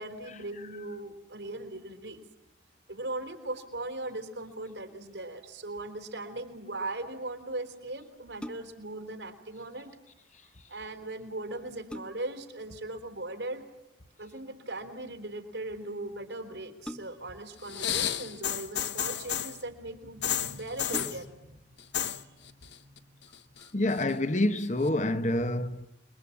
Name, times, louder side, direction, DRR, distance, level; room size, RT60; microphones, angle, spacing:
voice 1, 0.0-2.2 2.9-9.9 10.7-13.6 14.2-21.6 22.1-22.4 22.8-23.7, right 2 dB, 80° right, 4.0 m, -39 dB
sound 1, 8.4-8.9 11.0-11.1 11.5-12.5 14.0-14.4 16.8-17.4 18.4-19.1 19.9-20.0 20.3-20.4 20.8-21.5 22.0-22.1, equal, 5° left, 0.9 m, -44 dB
sound 2, 17.6-19.6 20.2-21.2 21.8-22.2 22.5-23.0 23.3-24.1 24.9-25.0, left 10 dB, 70° left, 1.1 m, -32 dB
voice 2, 23.7-25.9, left 1 dB, 40° left, 1.2 m, -27 dB
29.0 x 22.5 x 8.6 m
head